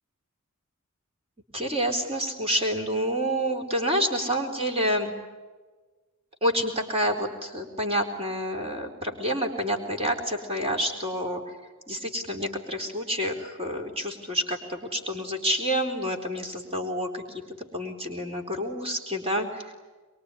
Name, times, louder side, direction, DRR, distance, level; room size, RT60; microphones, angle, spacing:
voice 1, 1.5-5.1 6.4-11.6 11.9-17.4 17.7-19.7, equal, 25° right, 3 dB, 4.1 m, -28 dB
24.0 x 23.5 x 10.0 m, 1.3 s
head